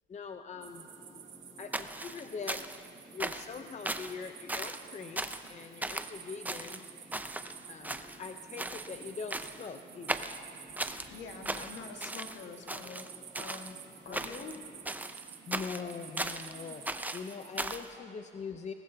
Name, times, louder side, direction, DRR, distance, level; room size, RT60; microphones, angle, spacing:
voice 1, 0.1-0.9 1.6-2.6 3.1-6.8 7.7-10.3 14.1-14.3 15.5-18.7, left 5 dB, 35° left, 6 dB, 0.6 m, -43 dB
sound 1, 0.6-17.8, right 8 dB, 70° right, 1.4 m, -51 dB
sound 2, 0.8-15.2, left 1 dB, 15° left, 0.9 m, -58 dB
sound 3, 1.7-2.9 3.2-3.5 3.8-4.1 4.5-4.9 5.2-5.5 5.8-6.1 6.4-7.5 7.8-8.3 8.6-8.9 9.3-9.7 10.1-11.1 11.4-12.4 12.7-13.7 14.1-14.5 14.8-16.5 16.8-17.9, right 2 dB, 10° right, 0.6 m, -37 dB
voice 2, 3.6-3.9 11.1-13.1 13.4-13.8 14.0-14.6, left 5 dB, 65° left, 3 dB, 1.6 m, -46 dB
20.0 x 18.5 x 2.8 m, 2.5 s
cardioid pair, 90°, 20 cm